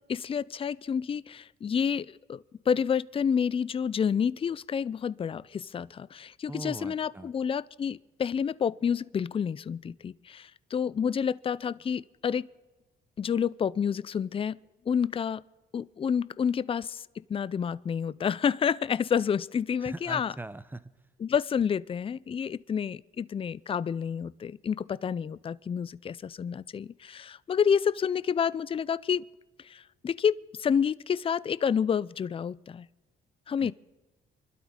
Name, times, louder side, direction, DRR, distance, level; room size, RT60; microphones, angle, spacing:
voice 1, 0.0-12.5 13.2-14.6 14.9-15.4 15.7-20.3 21.2-29.2 29.6-32.9 33.5-33.7, left 7 dB, 30° left, 0.4 m, -29 dB
voice 2, 6.5-7.3 19.8-20.9 33.6-33.7, right 2 dB, 10° right, 0.7 m, -40 dB
26.0 x 12.0 x 3.7 m
cardioid pair, 90°, 20 cm